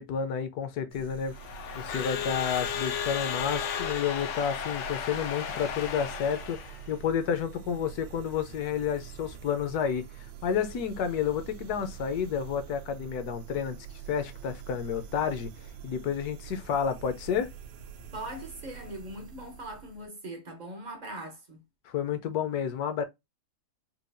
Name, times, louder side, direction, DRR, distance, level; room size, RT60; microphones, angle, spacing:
voice 1, 0.0-1.4 1.7-13.8 14.1-17.5 21.9-23.0, left 7 dB, 70° left, 1.1 m, -30 dB
sound 1, 0.9-20.1, right 10 dB, 85° right, 1.4 m, -45 dB
Crowd / Alarm, 1.3-6.9, left 8 dB, 90° left, 1.3 m, -34 dB
voice 2, 18.1-21.6, right 1 dB, 55° right, 0.4 m, -41 dB
4.6 x 2.3 x 2.5 m
omnidirectional pair, 1.9 m